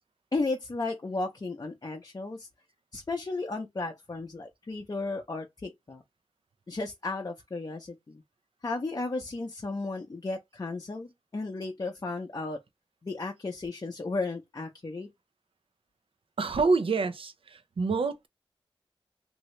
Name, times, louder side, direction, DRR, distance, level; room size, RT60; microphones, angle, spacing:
voice 1, 0.3-2.5 2.9-6.0 6.7-8.2 8.6-12.6 13.0-15.1, left 3 dB, 40° left, 0.6 m, -34 dB
voice 2, 16.4-18.3, right 4 dB, 70° right, 0.5 m, -27 dB
2.7 x 2.7 x 3.1 m
wide cardioid pair, 55°, 10 cm